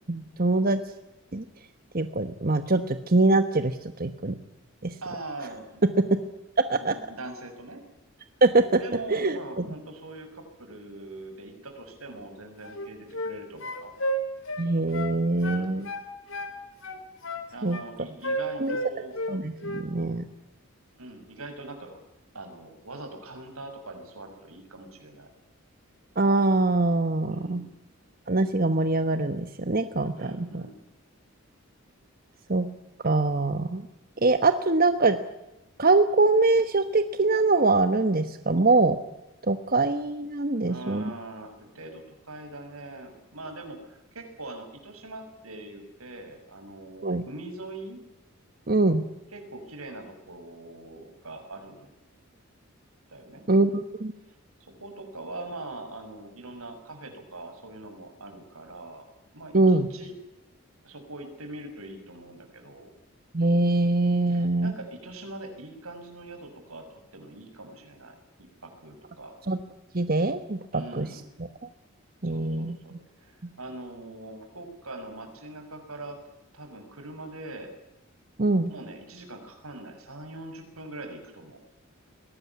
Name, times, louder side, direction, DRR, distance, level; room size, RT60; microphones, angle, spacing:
voice 1, 0.1-0.8 1.3-1.4 1.9-4.3 4.8-4.9 6.0-6.2 6.7-6.9 8.4-8.8 9.1-9.4 14.6-15.9 17.6-17.8 18.6-18.8 19.3-20.3 26.2-27.6 28.3-30.6 32.5-32.7 33.0-33.9 34.2-35.2 35.8-39.0 39.5-41.1 47.0-47.2 48.7-49.0 53.5-54.1 59.5-59.9 63.3-64.7 69.5-69.6 69.9-71.1 72.2-72.8 78.4-78.7, right 2 dB, 40° right, 9 dB, 1.2 m, -23 dB
voice 2, 5.0-5.8 6.8-7.8 8.8-13.9 15.4-15.9 17.5-19.1 21.0-25.3 27.3-27.7 30.2-30.8 40.6-48.0 49.3-51.9 53.1-53.4 54.3-54.4 54.7-59.0 59.3-59.6 59.9-60.1 60.8-62.9 64.3-66.9 67.1-69.4 70.7-71.3 72.2-76.2 76.5-77.7 78.7-81.6, right 2 dB, 85° right, 5 dB, 6.6 m, -42 dB
sound 1, 12.6-13.4 13.6-15.2 15.4-16.6 16.8-17.9 18.2-19.3 19.6-19.9, equal, 65° left, 4.4 m, -32 dB
22.0 x 18.5 x 9.6 m, 0.95 s
head